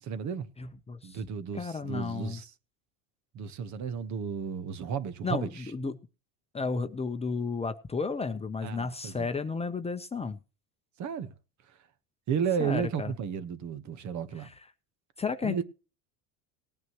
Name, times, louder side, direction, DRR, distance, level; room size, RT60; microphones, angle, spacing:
voice 1, 0.0-0.5 1.0-2.5 3.3-5.6 8.6-9.3 11.0-11.3 12.3-14.5 15.4-15.6, right 7 dB, 45° right, 1.3 m, -33 dB
voice 2, 0.6-1.2 1.5-2.4 5.2-6.0 6.5-10.4 12.6-13.1 14.4-14.5 15.2-15.6, left 4 dB, 15° left, 0.8 m, -33 dB
18.5 x 9.3 x 3.1 m
supercardioid pair, 115°, 40 cm